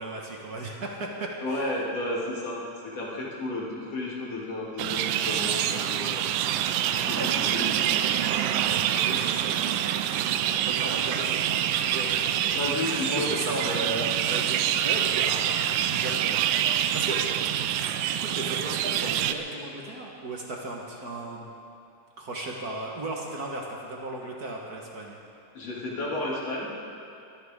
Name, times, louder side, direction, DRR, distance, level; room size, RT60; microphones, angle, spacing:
voice 1, 0.0-1.7 7.1-7.3 8.4-12.7 13.1-17.3 18.1-21.5 22.2-25.2, right 2 dB, 50° right, -1 dB, 1.1 m, -36 dB
voice 2, 1.4-2.6 2.8-6.5 6.9-8.0 12.5-13.8 25.6-26.7, left 2 dB, 50° left, -5 dB, 3.5 m, -32 dB
sound 1, 4.8-19.3, right 10 dB, 85° right, 2.1 m, -26 dB
22.5 x 14.0 x 3.7 m, 2.7 s
omnidirectional pair, 3.6 m